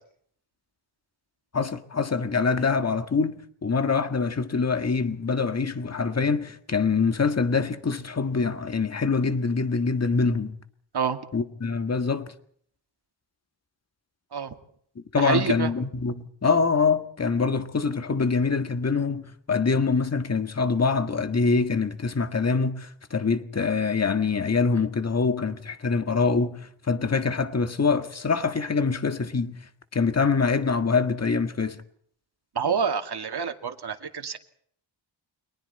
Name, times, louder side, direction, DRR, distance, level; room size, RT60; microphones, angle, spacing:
voice 1, 1.5-10.6 11.3-12.3 15.1-29.6 29.9-31.8, left 4 dB, 35° left, 1.7 m, -24 dB
voice 2, 15.2-15.7 32.6-34.4, right 6 dB, 55° right, 2.3 m, -27 dB
30.0 x 24.0 x 4.3 m
wide cardioid pair, 145°, 47 cm